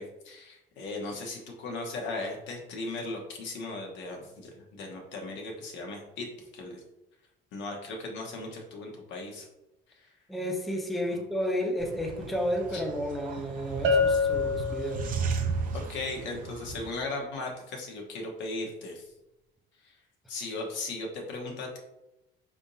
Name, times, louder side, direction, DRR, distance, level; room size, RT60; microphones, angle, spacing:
voice 1, 0.0-6.8 7.5-9.5 9.9-10.1 11.1-11.2 12.7-12.8 15.7-19.0 19.8-19.9 20.3-21.8, left 2 dB, 70° left, 0 dB, 1.1 m, -37 dB
voice 2, 10.3-15.1, equal, ahead, 1 dB, 0.4 m, -32 dB
sound 1, 11.8-16.9, right 4 dB, 45° right, 0.6 m, -35 dB
Bell, 13.8-15.5, left 4 dB, 80° right, 0.7 m, -26 dB
4.9 x 3.5 x 2.7 m, 0.95 s
cardioid pair, 155°, 20 cm